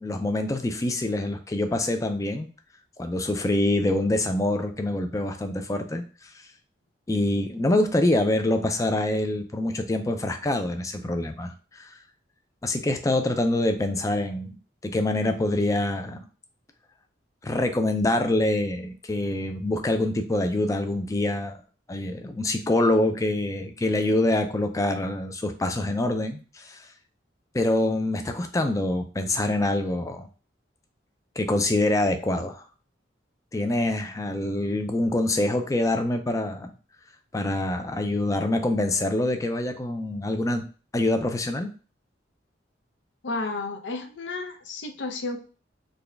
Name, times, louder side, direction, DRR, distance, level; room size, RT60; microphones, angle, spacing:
voice 1, 0.0-2.5 3.0-6.0 7.1-11.9 12.6-14.6 14.8-16.3 17.4-21.6 21.9-26.8 27.5-30.3 31.4-32.6 33.5-36.7 37.3-40.6 40.9-41.7, left 1 dB, 15° left, 6 dB, 0.4 m, -25 dB
voice 2, 43.2-45.4, left 3 dB, 75° left, 4 dB, 0.6 m, -32 dB
4.0 x 2.3 x 3.3 m, 0.36 s
head